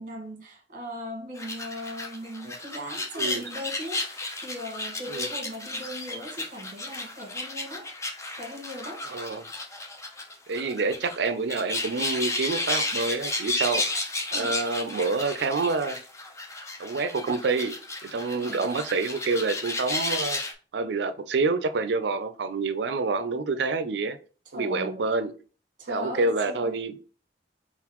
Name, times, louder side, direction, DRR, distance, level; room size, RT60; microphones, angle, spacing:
voice 1, 0.0-7.9 8.4-9.1 14.3-14.6 18.3-18.6 24.5-25.1 25.8-26.8, equal, 50° right, 1.4 m, -38 dB
sound 1, 1.4-20.5, left 2 dB, 15° left, 0.7 m, -33 dB
voice 2, 9.1-9.5 10.5-13.8 14.3-16.0 16.8-17.8 18.0-20.4 20.7-24.2 24.5-25.3 25.9-27.0, right 3 dB, 70° right, 0.5 m, -27 dB
4.2 x 3.9 x 3.0 m
head